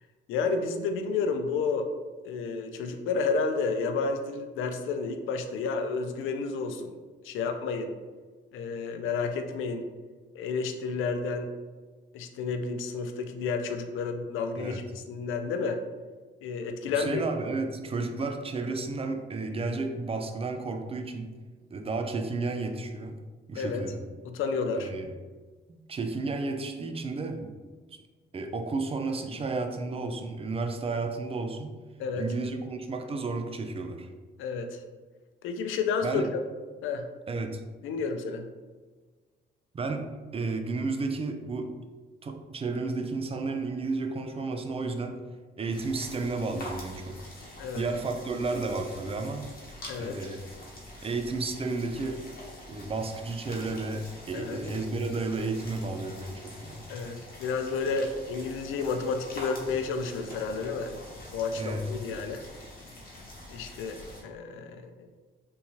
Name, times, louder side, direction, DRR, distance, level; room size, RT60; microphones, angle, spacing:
voice 1, 0.3-1.9 2.2-6.9 7.2-7.9 8.5-9.8 10.3-11.5 12.1-15.8 16.4-17.2 23.5-23.8 24.2-24.9 32.0-32.2 34.4-34.8 35.4-36.4 36.8-37.1 37.8-38.5 47.6-47.9 49.9-50.2 54.3-54.6 56.9-61.0 61.3-62.4 63.5-65.1, left 4 dB, 85° left, 6 dB, 0.4 m, -31 dB
voice 2, 16.9-21.3 21.7-23.1 23.5-24.0 24.8-25.1 25.9-27.5 27.9-28.0 28.3-31.8 32.2-34.1 36.0-36.3 37.3-37.6 39.7-41.8 42.2-45.2 45.6-47.3 47.7-49.5 50.0-50.4 51.0-52.3 52.7-56.8 61.5-61.9, right 3 dB, 30° right, 6 dB, 0.4 m, -32 dB
BS Swarm of roaches, 45.7-64.2, left 1 dB, 50° left, 1.1 m, -45 dB
3.5 x 2.7 x 2.9 m, 1.4 s
cardioid pair, 90°, 20 cm